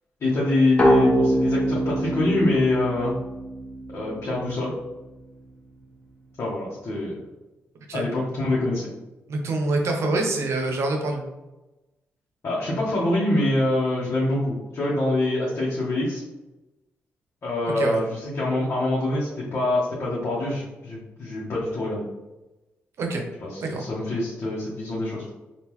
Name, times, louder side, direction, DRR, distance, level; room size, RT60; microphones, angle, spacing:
voice 1, 0.2-3.1 3.9-4.7 6.4-7.2 7.9-8.9 12.4-16.2 17.4-22.0 23.4-25.2, left 2 dB, 55° left, -6 dB, 1.0 m, -25 dB
sound 1, 0.8-4.3, equal, 25° left, 1.1 m, -23 dB
voice 2, 9.3-11.2 17.7-18.0 23.0-23.2 23.6-23.9, right 2 dB, 70° right, 2 dB, 0.7 m, -25 dB
3.7 x 2.4 x 3.0 m, 1.0 s
cardioid pair, 70°, 5 cm